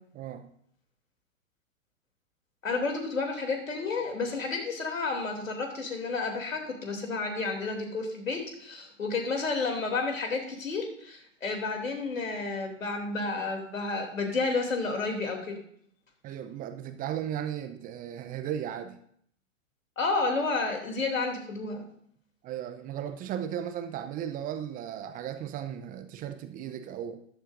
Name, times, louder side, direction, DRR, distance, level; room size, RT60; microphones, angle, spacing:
voice 1, 0.1-0.5 16.2-19.0 22.4-27.2, right 10 dB, 20° right, 9 dB, 0.6 m, -36 dB
voice 2, 2.6-15.6 20.0-21.8, left 3 dB, 80° left, 3 dB, 2.9 m, -31 dB
14.0 x 11.0 x 2.6 m, 0.65 s
figure-of-eight pair, 110°, 40 cm